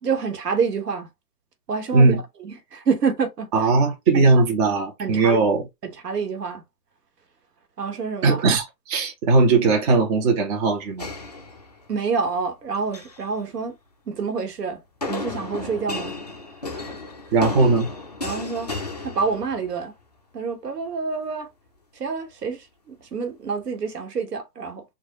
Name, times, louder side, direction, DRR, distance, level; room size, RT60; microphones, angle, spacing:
voice 1, 0.0-1.1 1.7-3.7 4.1-4.3 5.0-5.5 5.8-6.6 7.8-8.4 11.9-13.7 14.1-14.8 15.1-16.2 16.7-16.9 18.2-18.7 19.0-19.9 20.3-21.5 21.9-24.8, right 5 dB, 75° right, 1.4 m, -27 dB
voice 2, 3.5-5.6 8.2-11.1 17.3-17.9, right 3 dB, 25° right, 0.8 m, -19 dB
sound 1, 11.0-12.1 12.8-13.2 15.0-19.8, left 2 dB, 30° left, 0.4 m, -33 dB
4.6 x 2.5 x 2.9 m
hypercardioid pair, 140°, 48 cm